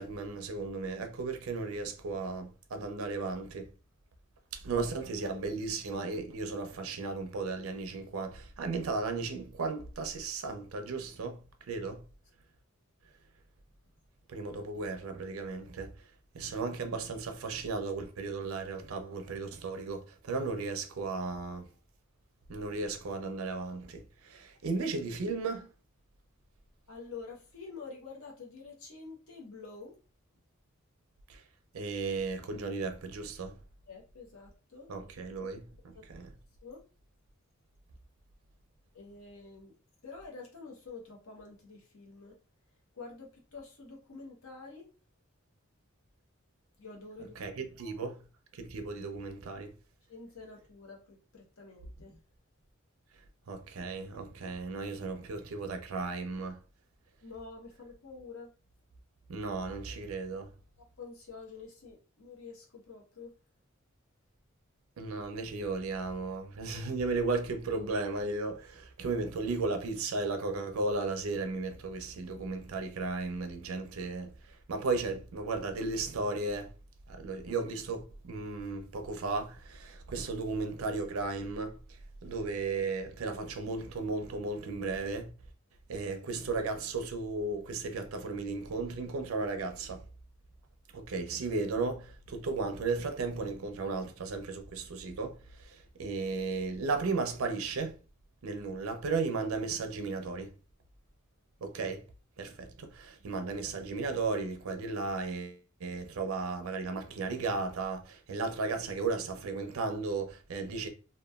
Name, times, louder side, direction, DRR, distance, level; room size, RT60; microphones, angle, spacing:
voice 1, 0.0-3.7 4.5-12.0 14.3-15.9 16.3-21.7 22.5-25.7 31.3-31.4 31.7-33.6 34.9-36.3 47.4-48.3 48.5-49.7 53.5-56.6 59.3-60.5 65.0-76.7 77.1-81.8 82.2-85.3 85.9-90.0 90.9-98.0 98.4-100.5 101.6-102.0 102.4-110.9, right 3 dB, 85° right, 0.5 m, -35 dB
voice 2, 26.9-30.0 33.9-34.9 35.9-36.1 36.6-36.8 38.9-39.7 40.0-42.4 42.9-44.9 46.8-47.4 47.8-48.1 50.1-52.2 57.2-58.5 61.0-63.3, left 4 dB, 90° left, 0.9 m, -48 dB
2.9 x 2.2 x 2.3 m
head